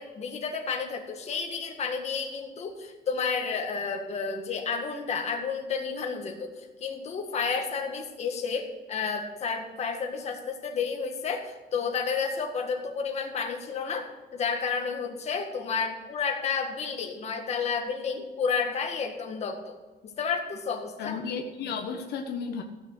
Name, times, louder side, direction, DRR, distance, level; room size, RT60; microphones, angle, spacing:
voice 1, 0.0-19.8 20.0-21.2, left 5 dB, 40° left, 2 dB, 1.9 m, -31 dB
voice 2, 21.0-22.6, left 5 dB, 75° left, 3 dB, 1.3 m, -33 dB
15.5 x 6.7 x 8.1 m, 1.3 s
cardioid pair, 165°, 17 cm